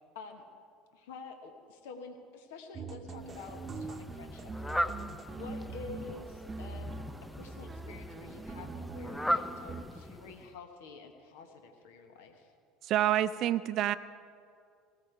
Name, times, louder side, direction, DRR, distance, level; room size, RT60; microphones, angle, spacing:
voice 1, 0.9-4.8 5.3-7.0 7.4-12.5, left 4 dB, 75° left, 5 dB, 1.3 m, -48 dB
sound 1, 2.7-9.8, right 3 dB, 30° right, 0.9 m, -43 dB
Fowl, 3.2-10.5, equal, 5° left, 0.6 m, -38 dB
voice 2, 12.9-14.0, right 12 dB, 55° right, 13 dB, 0.5 m, -27 dB
19.0 x 15.0 x 4.6 m, 2.3 s
hypercardioid pair, 70°, 0 cm